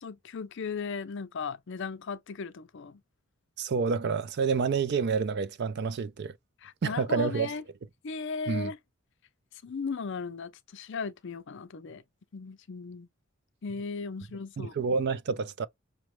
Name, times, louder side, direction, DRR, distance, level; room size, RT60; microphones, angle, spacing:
voice 1, 0.0-3.0 6.6-7.6 8.0-8.8 9.6-12.0 12.3-13.1 13.6-14.7, left 5 dB, 55° left, 0.5 m, -36 dB
voice 2, 3.6-6.3 6.8-7.5 8.5-8.7 14.6-15.7, right 5 dB, 50° right, 0.4 m, -28 dB
5.8 x 2.1 x 3.1 m
head